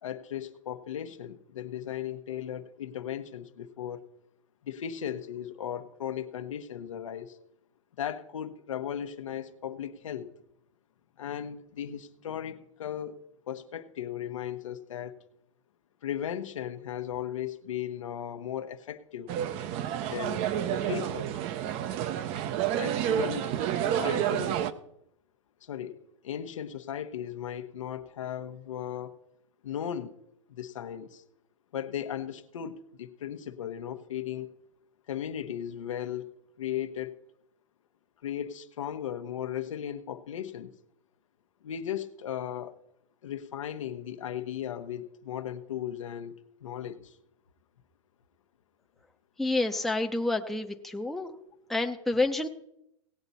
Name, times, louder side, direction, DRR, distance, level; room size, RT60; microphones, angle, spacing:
voice 1, 0.0-4.0 4.6-7.4 8.0-10.3 11.2-15.2 16.0-19.3 20.1-21.3 22.8-23.5 23.8-24.7 25.6-29.1 29.6-30.1 30.5-31.2 31.7-34.5 35.1-36.3 36.6-37.1 38.2-40.7 41.6-42.8 43.2-47.1, left 10 dB, 80° left, 0.9 m, -36 dB
sound 1, 19.3-24.7, right 10 dB, 40° right, 0.7 m, -29 dB
voice 2, 49.4-51.4 51.7-52.5, left 2 dB, ahead, 0.7 m, -28 dB
17.5 x 7.9 x 4.1 m
hypercardioid pair, 125°, 16 cm